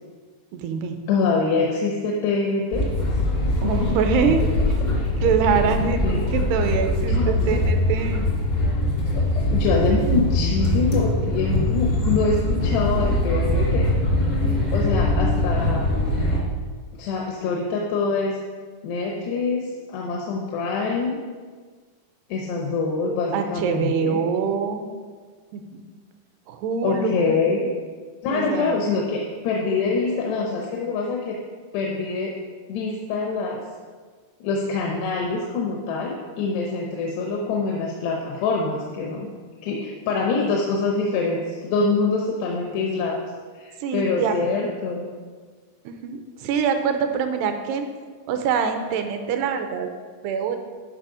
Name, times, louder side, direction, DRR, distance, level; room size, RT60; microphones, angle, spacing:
voice 1, 0.5-1.0 3.6-4.4 5.2-8.3 23.3-24.9 25.5-25.8 26.5-27.4 28.3-28.7 43.8-44.4 45.9-47.9 48.3-49.9 50.2-50.6, right 6 dB, 85° right, 6 dB, 2.8 m, -24 dB
voice 2, 1.1-2.9 3.6-3.9 4.2-4.3 6.0-6.3 7.1-7.6 9.2-9.3 9.5-13.9 14.5-15.9 17.0-18.4 18.8-21.2 22.3-24.2 26.8-27.7 28.2-31.4 31.7-32.4 32.7-33.6 34.4-39.3 39.6-43.2 43.5-45.1, left 4 dB, 85° left, 0 dB, 3.0 m, -25 dB
sound 1, 2.7-16.4, left 1 dB, 60° left, 0.6 m, -22 dB
11.5 x 5.4 x 5.0 m, 1.5 s
omnidirectional pair, 4.7 m